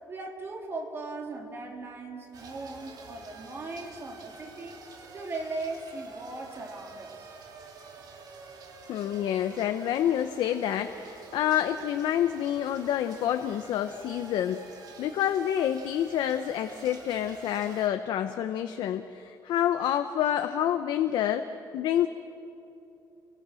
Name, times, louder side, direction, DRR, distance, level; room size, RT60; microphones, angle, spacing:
voice 1, 0.1-4.8 5.1-7.3, right 3 dB, 30° right, 2 dB, 3.0 m, -38 dB
sound 1, 2.3-17.9, right 4 dB, 60° right, 3.2 m, -48 dB
voice 2, 8.9-14.6 15.0-21.5 21.7-22.1, left 10 dB, 80° left, 7 dB, 0.9 m, -28 dB
29.0 x 24.5 x 6.4 m, 2.8 s
cardioid pair, 170°, 8 cm